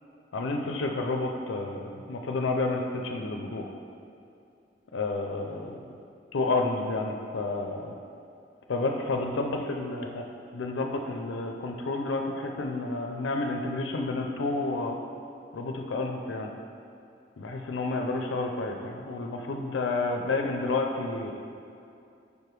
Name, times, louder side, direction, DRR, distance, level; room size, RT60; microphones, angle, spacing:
voice 1, 0.3-3.7 4.9-5.7 6.3-7.9 8.7-10.3 10.5-15.0 15.5-16.5 17.4-21.3, left 3 dB, 90° left, 3 dB, 0.5 m, -30 dB
5.3 x 4.8 x 4.7 m, 2.5 s
head